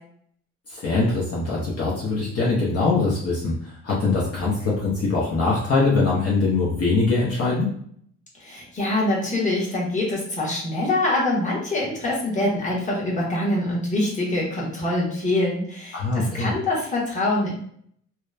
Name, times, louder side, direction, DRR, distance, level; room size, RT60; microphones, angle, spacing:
voice 1, 0.7-7.7 15.9-16.5, left 3 dB, 50° left, -5 dB, 0.7 m, -22 dB
voice 2, 8.4-17.5, left 1 dB, 25° left, -4 dB, 1.1 m, -24 dB
2.8 x 2.1 x 2.3 m, 0.64 s
cardioid pair, 90°, 30 cm